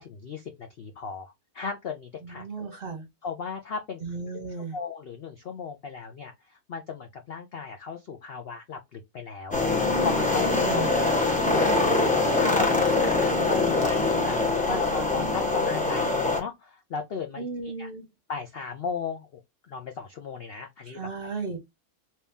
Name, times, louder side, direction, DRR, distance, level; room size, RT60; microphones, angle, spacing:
voice 1, 0.0-2.8 3.2-4.0 4.3-4.4 4.7-12.0 12.4-17.9 18.3-19.4 19.7-21.1, left 5 dB, 65° left, 0.6 m, -36 dB
voice 2, 2.2-3.1 4.0-4.7 10.4-10.9 17.4-18.1 20.9-21.6, right 4 dB, 45° right, 0.9 m, -35 dB
sound 1, 9.5-16.4, left 3 dB, 10° left, 0.6 m, -23 dB
3.0 x 2.8 x 3.4 m
omnidirectional pair, 1.7 m